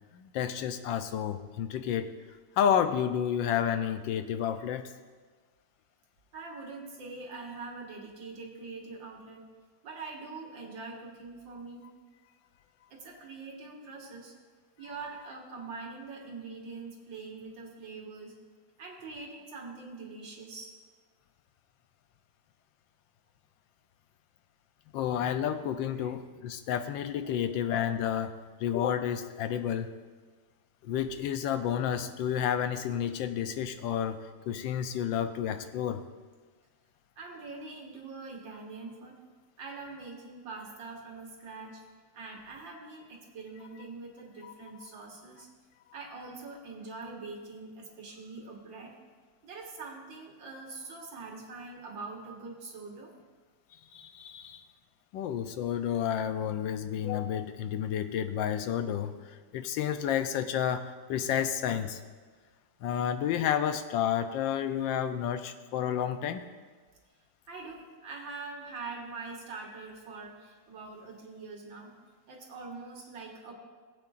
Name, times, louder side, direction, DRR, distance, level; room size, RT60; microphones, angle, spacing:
voice 1, 0.1-2.1 2.6-4.9 24.9-28.3 28.6-29.9 30.8-34.2 34.5-36.0 44.4-44.5 53.9-54.7 55.1-62.0 62.8-66.4, left 9 dB, 90° left, 9 dB, 1.4 m, -30 dB
voice 2, 6.3-9.5 9.8-11.9 12.9-14.4 14.8-18.4 18.8-20.7 25.9-26.1 27.2-27.5 37.2-39.2 39.6-41.8 42.1-45.5 45.9-49.0 49.4-53.1 61.2-61.3 67.5-71.9 72.3-73.5, right 3 dB, 90° right, 0 dB, 2.4 m, -44 dB
19.5 x 8.7 x 2.5 m, 1.5 s
omnidirectional pair, 2.0 m